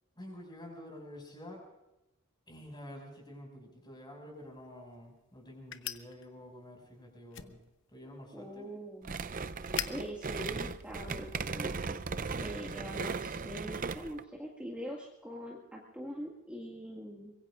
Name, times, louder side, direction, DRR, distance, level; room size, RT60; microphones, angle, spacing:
voice 1, 0.2-1.6 2.5-7.6 7.9-8.7, left 1 dB, 20° left, 1 dB, 6.3 m, -49 dB
sound 1, 4.3-11.5, left 10 dB, 60° left, 0.9 m, -46 dB
voice 2, 8.3-9.1 9.8-12.0 12.4-17.3, equal, 5° right, -3 dB, 2.0 m, -43 dB
sound 2, 9.0-14.2, right 4 dB, 40° right, 0.6 m, -37 dB
25.0 x 22.5 x 2.5 m, 0.94 s
head